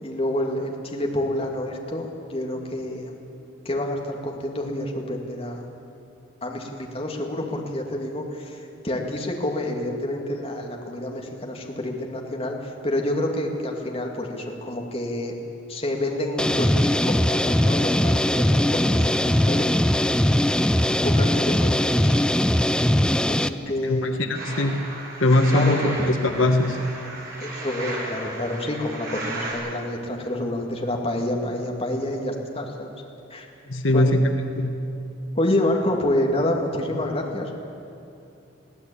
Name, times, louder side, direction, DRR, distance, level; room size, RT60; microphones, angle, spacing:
voice 1, 0.0-3.2 3.6-5.7 6.4-15.3 15.7-19.6 19.9-20.1 20.5-20.7 21.0-22.2 23.2-24.1 25.5-26.1 27.4-32.9 33.3-33.5 33.9-34.2 35.3-37.5, left 1 dB, 30° left, 1 dB, 2.3 m, -28 dB
sound 1, 16.4-23.5, left 1 dB, 5° left, 0.4 m, -20 dB
voice 2, 23.9-24.8 25.2-26.0 26.2-26.8 33.7-34.2 34.6-34.9, left 1 dB, 80° left, 5 dB, 1.4 m, -21 dB
sound 2, 24.3-29.5, right 2 dB, 50° right, 6.4 m, -35 dB
22.0 x 16.0 x 8.6 m, 2.7 s
head